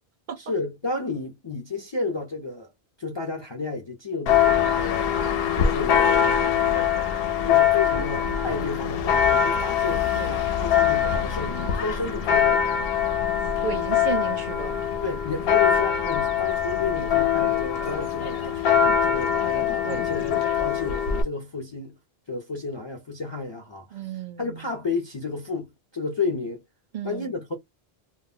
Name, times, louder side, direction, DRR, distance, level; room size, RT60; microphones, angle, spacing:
voice 1, 0.4-2.7 3.0-4.9 5.5-6.9 7.4-12.7 15.0-22.0 22.3-24.0 24.4-26.6 27.0-27.5, left 3 dB, 40° left, 0.4 m, -32 dB
Church bell, 4.3-21.2, left 8 dB, 70° left, 0.7 m, -23 dB
voice 2, 13.6-14.7 19.8-20.1 23.9-24.6 26.9-27.4, right 8 dB, 60° right, 0.6 m, -33 dB
2.1 x 2.0 x 3.6 m
omnidirectional pair, 1.1 m